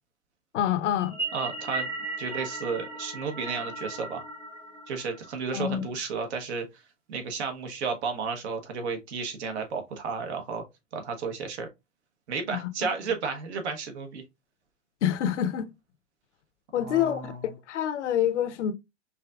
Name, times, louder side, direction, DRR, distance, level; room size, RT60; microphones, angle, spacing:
voice 1, 0.5-1.2 5.5-5.8 12.5-12.7 15.0-15.7 16.7-18.7, left 10 dB, 75° left, 0.7 m, -27 dB
sound 1, 1.0-5.5, right 3 dB, 10° right, 0.5 m, -36 dB
voice 2, 1.3-1.9 2.2-4.2 4.9-6.7 7.1-10.6 10.9-11.7 12.3-14.2 16.8-17.4, right 5 dB, 65° right, 1.2 m, -32 dB
4.8 x 2.8 x 2.4 m
hypercardioid pair, 130°, 36 cm